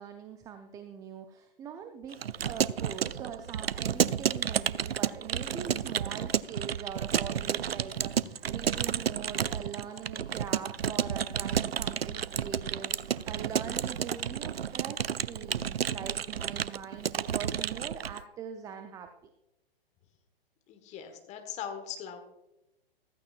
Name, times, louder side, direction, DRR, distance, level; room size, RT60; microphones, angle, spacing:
voice 1, 0.0-2.2 2.5-19.1, right 7 dB, 10° right, 7 dB, 0.5 m, -42 dB
Keyboard (musical) / Computer keyboard, 2.1-18.2, right 8 dB, 80° right, 0.4 m, -31 dB
voice 2, 20.7-22.2, left 8 dB, 25° left, 6 dB, 1.5 m, -40 dB
15.0 x 14.0 x 2.5 m, 0.90 s
figure-of-eight pair, 115°, 30 cm